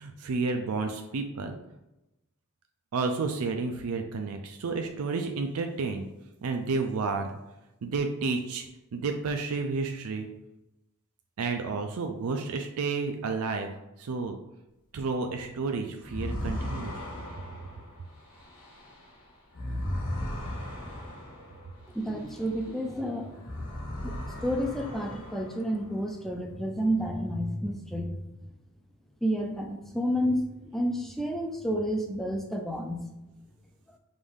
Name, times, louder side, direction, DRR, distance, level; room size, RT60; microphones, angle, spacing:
voice 1, 0.0-1.6 2.9-6.0 6.4-7.3 7.8-8.6 8.9-10.3 11.4-13.7 14.0-14.3 14.9-16.9, right 4 dB, 85° right, 4 dB, 0.4 m, -31 dB
sound 1, 16.0-22.9 23.3-26.0, left 1 dB, 85° left, 1.4 m, -37 dB
voice 2, 21.9-23.3 24.0-28.1 29.2-33.0, equal, ahead, 2 dB, 0.4 m, -30 dB
5.1 x 2.6 x 3.6 m, 0.94 s
head